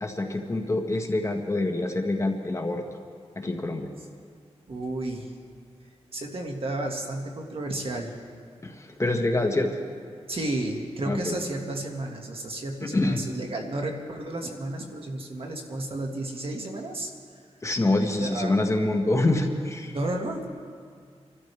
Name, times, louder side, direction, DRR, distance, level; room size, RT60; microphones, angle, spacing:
voice 1, 0.0-2.8 3.3-3.9 8.6-9.8 11.0-11.3 12.8-13.2 17.6-20.0, left 2 dB, 25° left, 3 dB, 1.4 m, -26 dB
voice 2, 4.7-5.3 6.1-8.1 10.3-17.1 18.2-18.6 19.9-20.5, right 2 dB, 55° right, 1 dB, 2.0 m, -32 dB
26.5 x 13.0 x 3.5 m, 2.1 s
wide cardioid pair, 75°, 11 cm